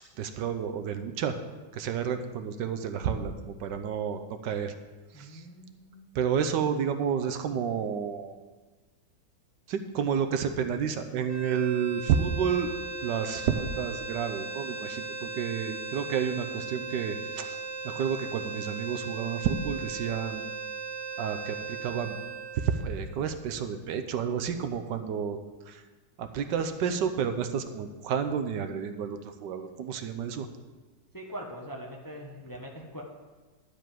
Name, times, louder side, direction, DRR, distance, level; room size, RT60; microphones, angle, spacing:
voice 1, 0.2-1.3 1.7-4.7 5.2-5.4 6.1-8.4 9.7-12.7 13.0-17.6 17.8-20.4 21.2-22.2 22.6-25.4 25.7-25.8 26.2-30.5, right 7 dB, 80° right, 8 dB, 1.4 m, -30 dB
voice 2, 5.1-6.3 31.1-33.0, equal, 15° left, -1 dB, 0.9 m, -42 dB
sound 1, 11.3-23.5, right 4 dB, 15° right, 0.6 m, -38 dB
11.0 x 5.2 x 7.5 m, 1.3 s
omnidirectional pair, 1.9 m